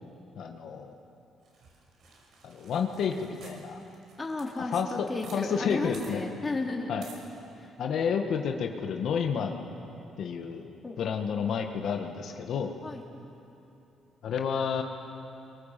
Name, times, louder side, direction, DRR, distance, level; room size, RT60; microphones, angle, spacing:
voice 1, 0.4-0.9 2.4-3.8 4.7-4.9 5.3-6.2 6.9-7.0 7.8-9.6 10.2-10.7 11.0-12.7 14.2-14.8, left 6 dB, 70° left, 3 dB, 1.8 m, -30 dB
sound 1, 1.5-5.4 5.7-5.8 5.9-6.1 7.0-7.2, right 4 dB, 70° right, 5.8 m, -52 dB
voice 2, 4.2-7.0 7.6-7.7 10.8-11.0 12.8-13.0, left 2 dB, 25° left, -1 dB, 3.9 m, -34 dB
24.0 x 23.5 x 7.7 m, 2.8 s
cardioid pair, 90°, 0 cm